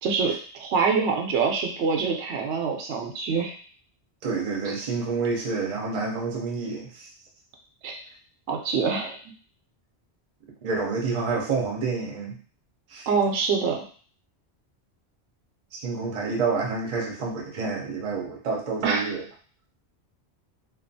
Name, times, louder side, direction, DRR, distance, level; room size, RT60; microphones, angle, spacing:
voice 1, 0.0-3.5 7.8-7.9 8.5-9.2 13.1-13.8 18.8-19.0, right 5 dB, 85° right, 1 dB, 0.9 m, -25 dB
voice 2, 4.2-7.1 10.6-12.4 12.9-13.1 15.7-19.2, right 4 dB, 45° right, -1 dB, 0.6 m, -28 dB
2.5 x 2.3 x 2.6 m, 0.43 s
omnidirectional pair, 1.1 m